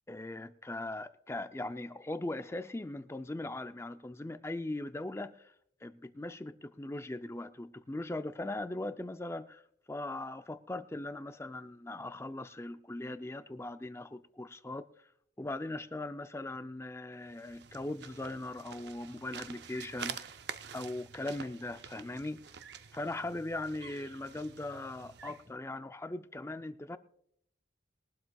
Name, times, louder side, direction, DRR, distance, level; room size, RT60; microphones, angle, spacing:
voice 1, 0.1-5.5 5.8-9.6 9.9-14.9 15.4-20.3 20.7-22.4 22.9-27.0, left 2 dB, 15° left, 0.4 m, -39 dB
sound 1, 17.2-25.5, right 7 dB, 60° right, 0.6 m, -47 dB
21.5 x 12.0 x 2.3 m
head